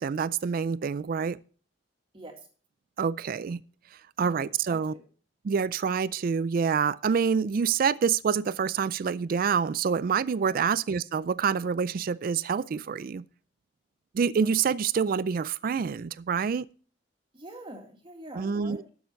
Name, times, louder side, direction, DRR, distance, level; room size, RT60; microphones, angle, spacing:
voice 1, 0.0-1.4 3.0-3.6 4.2-4.9 5.4-13.2 14.1-16.7 18.4-18.8, right 6 dB, 50° right, 0.4 m, -27 dB
voice 2, 2.1-2.5 4.2-5.0 10.5-10.7 17.3-18.8, right 1 dB, 30° right, 2.1 m, -44 dB
11.5 x 7.1 x 4.5 m
head